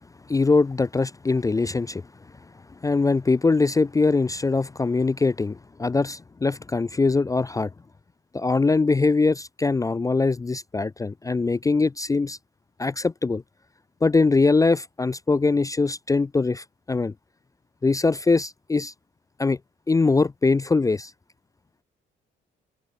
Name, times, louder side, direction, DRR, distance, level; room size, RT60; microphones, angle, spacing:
voice 1, 0.3-2.0 2.8-7.7 8.3-12.4 12.8-13.4 14.0-17.1 17.8-18.9 19.4-19.6 19.9-21.1, left 3 dB, 15° left, 0.4 m, -22 dB
open air
cardioid pair, 90°, 20 cm